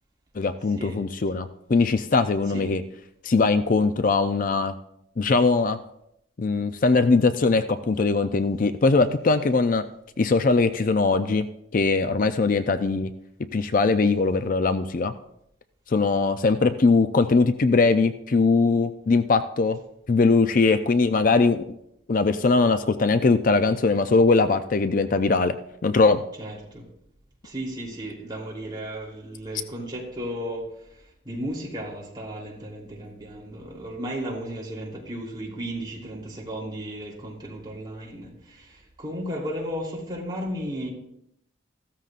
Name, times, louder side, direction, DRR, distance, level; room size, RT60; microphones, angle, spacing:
voice 1, 0.4-2.8 3.2-4.7 5.2-5.8 6.4-9.8 10.2-11.5 11.7-13.1 13.5-15.1 15.9-19.8 20.1-21.6 22.1-25.6 25.8-26.2, left 3 dB, 45° left, 10 dB, 0.5 m, -21 dB
voice 2, 2.5-2.8 26.4-26.9 27.4-40.9, equal, 25° right, -3 dB, 3.2 m, -34 dB
15.0 x 13.0 x 2.5 m, 0.77 s
head